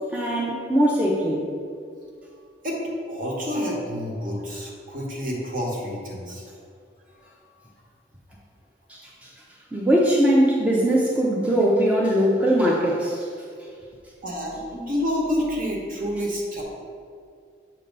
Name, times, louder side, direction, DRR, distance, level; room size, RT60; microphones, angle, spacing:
voice 1, 0.1-1.5 8.9-9.3 9.7-13.3, equal, 5° right, -4 dB, 0.5 m, -21 dB
voice 2, 3.1-6.5 14.2-16.6, equal, 50° right, -2 dB, 1.2 m, -28 dB
7.4 x 2.8 x 5.2 m, 2.3 s
head